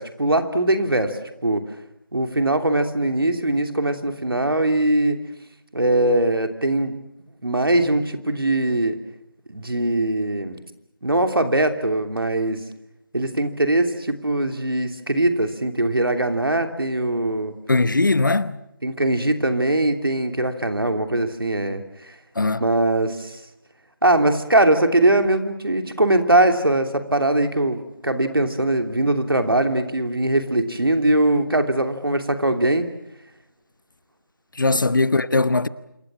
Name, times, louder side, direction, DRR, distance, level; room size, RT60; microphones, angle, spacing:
voice 1, 0.0-1.6 2.1-5.2 5.7-7.0 7.4-9.0 9.5-10.6 11.0-12.6 13.1-17.5 18.8-22.1 22.6-23.4 24.0-32.9 34.7-34.8, right 1 dB, 85° right, 3.0 m, -21 dB
voice 2, 17.7-18.6 22.4-22.6 34.6-35.7, left 3 dB, 60° left, 1.0 m, -20 dB
27.0 x 22.0 x 7.5 m
figure-of-eight pair, 170°, 12 cm